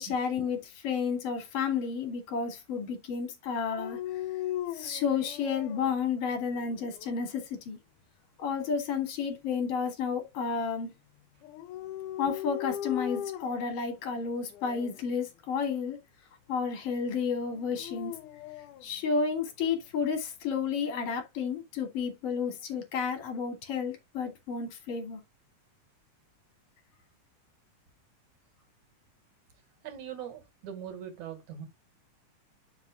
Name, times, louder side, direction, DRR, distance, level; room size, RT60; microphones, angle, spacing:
voice 1, 0.0-4.0 4.7-7.8 8.4-10.9 12.2-16.0 16.5-18.1 18.8-25.2, left 6 dB, 50° left, 3.2 m, -31 dB
Dog, 3.7-5.9 6.5-7.3 11.4-13.7 14.5-15.0 17.5-18.8, left 11 dB, 85° left, 2.1 m, -38 dB
voice 2, 29.8-31.7, right 9 dB, 70° right, 3.2 m, -41 dB
11.0 x 5.7 x 2.4 m
omnidirectional pair, 3.6 m